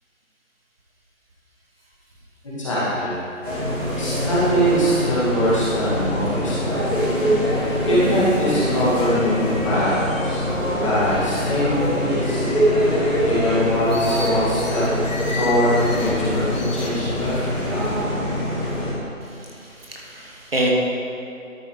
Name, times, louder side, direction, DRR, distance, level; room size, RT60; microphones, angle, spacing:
voice 1, 2.6-3.2 4.0-6.9 7.9-10.0 10.2-10.4 10.7-12.5 13.2-14.9 15.3-17.9, equal, 20° left, -11 dB, 2.0 m, -22 dB
sound 1, 3.4-18.9, equal, 10° right, 1.9 m, -24 dB
sound 2, 8.6-11.6 12.2-16.1 16.5-17.4, left 2 dB, 65° left, 1.7 m, -32 dB
voice 2, 19.2-20.7, right 1 dB, 45° right, -2 dB, 1.3 m, -28 dB
12.5 x 4.6 x 4.8 m, 2.5 s
hypercardioid pair, 175°, 42 cm